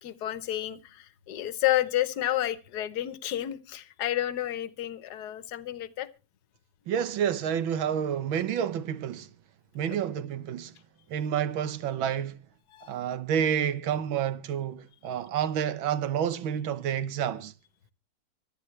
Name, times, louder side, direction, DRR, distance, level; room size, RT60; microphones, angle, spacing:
voice 1, 0.0-6.1 12.7-13.0, left 13 dB, 60° left, 1.4 m, -30 dB
voice 2, 6.9-9.3 9.8-10.7 11.1-12.4 12.9-17.5, right 9 dB, 80° right, 1.7 m, -29 dB
24.5 x 10.0 x 3.2 m
omnidirectional pair, 2.2 m